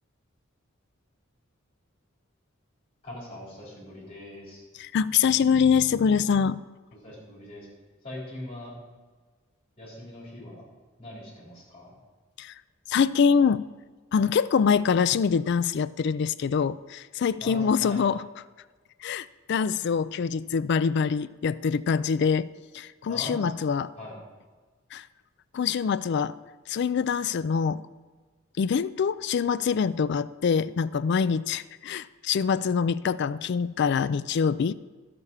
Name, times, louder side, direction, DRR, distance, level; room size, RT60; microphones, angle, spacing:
voice 1, 3.0-4.6 7.0-7.7 8.0-8.7 9.8-10.7 11.0-11.9 17.4-18.0 23.1-23.5 24.0-24.1, left 1 dB, 30° left, -5 dB, 4.0 m, -41 dB
voice 2, 4.8-6.6 12.4-12.5 12.9-13.7 14.1-18.2 19.0-22.5 22.7-23.9 24.9-25.0 25.5-26.3 26.7-27.8 28.6-34.7, left 6 dB, 55° left, 16 dB, 0.3 m, -24 dB
12.0 x 6.8 x 5.5 m, 1.4 s
head